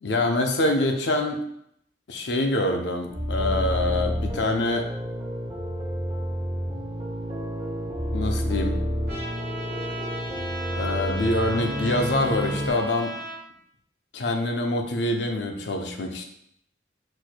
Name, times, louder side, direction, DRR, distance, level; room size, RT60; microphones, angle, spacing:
voice 1, 0.0-1.4 2.1-4.9 8.1-8.8 10.7-13.1 14.1-16.2, left 2 dB, 65° left, 4 dB, 0.6 m, -25 dB
sound 1, 3.1-12.7, equal, 25° right, 0.6 m, -29 dB
Trumpet, 9.1-13.4, right 1 dB, 60° right, 1.1 m, -36 dB
4.5 x 4.2 x 2.2 m, 0.73 s
head